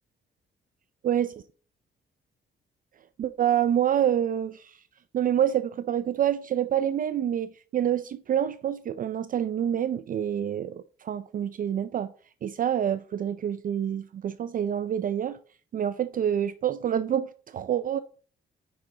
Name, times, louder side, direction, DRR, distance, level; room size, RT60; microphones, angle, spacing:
voice 1, 3.2-4.8 5.1-12.1 12.4-15.4 15.7-18.0, right 10 dB, 45° right, 0.4 m, -27 dB
6.0 x 5.9 x 3.8 m
cardioid pair, 90°, 20 cm